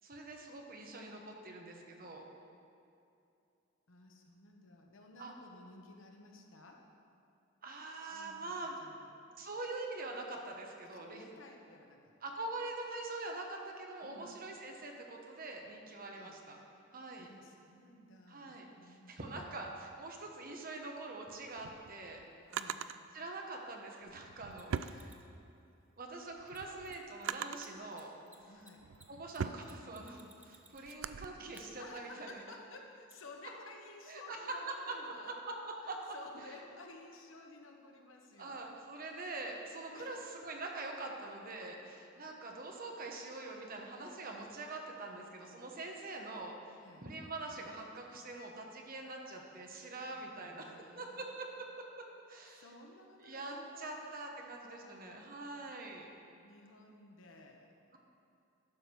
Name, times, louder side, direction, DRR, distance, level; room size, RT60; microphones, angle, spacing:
voice 1, 0.0-2.2 5.2-5.3 7.6-8.8 9.4-11.2 12.2-16.6 16.9-17.3 18.3-22.2 23.1-25.2 26.0-28.1 29.1-32.4 34.1-34.4 34.9-35.0 35.3-35.4 35.7-36.0 36.4-36.5 38.4-46.5 47.0-52.7 53.2-56.1, right 2 dB, 45° right, 1 dB, 1.2 m, -44 dB
voice 2, 3.9-6.8 8.1-8.5 8.8-9.1 10.9-12.1 14.0-14.3 16.1-16.4 17.2-19.5 22.5-22.9 28.5-28.9 31.8-35.4 35.8-38.7 39.9-40.2 46.8-47.1 50.3-51.2 52.5-55.3 56.3-57.7, left 2 dB, 75° left, 2 dB, 1.2 m, -55 dB
Drawer open or close, 21.3-23.0 24.0-25.6 26.1-27.8 28.4-31.3, right 7 dB, 75° right, 0.4 m, -42 dB
Mechanisms, 24.5-25.3 26.5-26.6 26.8-27.0 27.2-27.3 27.6-31.1 31.5-31.6 33.1-33.2, right 2 dB, 10° right, 0.7 m, -59 dB
11.5 x 4.9 x 7.0 m, 2.7 s
head